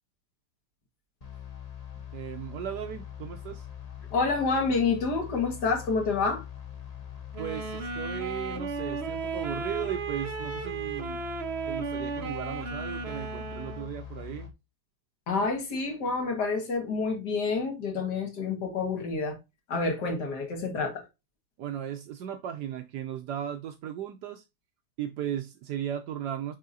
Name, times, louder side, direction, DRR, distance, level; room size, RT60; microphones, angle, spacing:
sound 1, 1.2-14.5, left 9 dB, 30° left, 0.8 m, -42 dB
voice 1, 2.1-3.7 7.4-11.2 11.7-14.5 21.6-24.4 25.0-26.5, right 10 dB, 75° right, 1.2 m, -36 dB
voice 2, 4.1-6.4 15.3-19.4 19.7-21.1, left 4 dB, 70° left, 2.4 m, -28 dB
sound 2, 7.3-13.9, right 4 dB, 40° right, 1.2 m, -35 dB
10.5 x 3.5 x 2.7 m
omnidirectional pair, 1.9 m